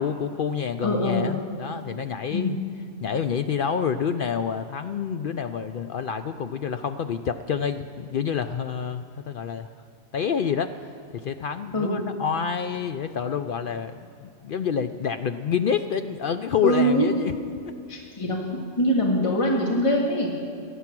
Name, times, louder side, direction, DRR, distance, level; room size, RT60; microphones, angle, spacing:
voice 1, 0.0-2.6 3.0-9.7 10.1-10.7 11.1-17.3 17.7-17.8, left 7 dB, 75° left, 9 dB, 0.4 m, -28 dB
voice 2, 0.8-1.3 2.3-2.6 11.7-12.0 16.6-17.1 17.9-18.4 18.8-20.3, equal, 20° left, -1 dB, 1.9 m, -23 dB
18.0 x 13.0 x 6.0 m, 2.5 s
omnidirectional pair, 1.5 m